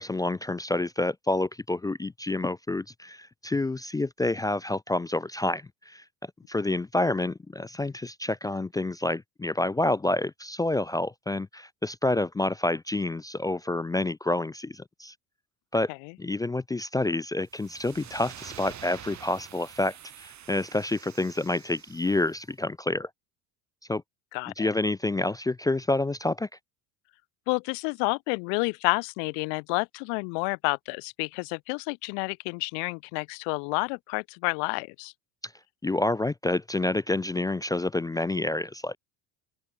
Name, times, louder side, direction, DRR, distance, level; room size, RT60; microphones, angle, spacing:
voice 1, 0.0-6.0 6.5-15.1 15.7-15.9 16.2-23.1 23.9-24.0 24.6-26.5 35.8-39.0, left 2 dB, 10° left, 0.4 m, -28 dB
sound 1, 17.5-22.4, right 10 dB, 40° right, 3.4 m, -47 dB
voice 2, 24.3-24.7 27.5-35.1, left 40 dB or more, 85° left, 1.1 m, -30 dB
open air
cardioid pair, 125°, 42 cm